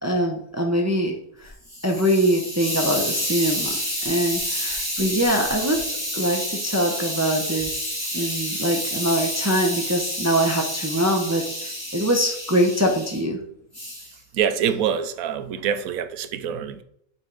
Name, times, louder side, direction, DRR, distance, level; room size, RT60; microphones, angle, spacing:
voice 1, 0.0-1.5 1.8-3.8 4.0-5.8 6.1-13.4, equal, 15° right, 0.6 m, -23 dB
Hiss, 1.4-13.2 13.7-14.1, equal, 15° left, 2.4 m, -29 dB
voice 2, 14.3-16.8, right 8 dB, 80° right, 1.1 m, -25 dB
7.7 x 5.2 x 3.9 m
omnidirectional pair, 1.5 m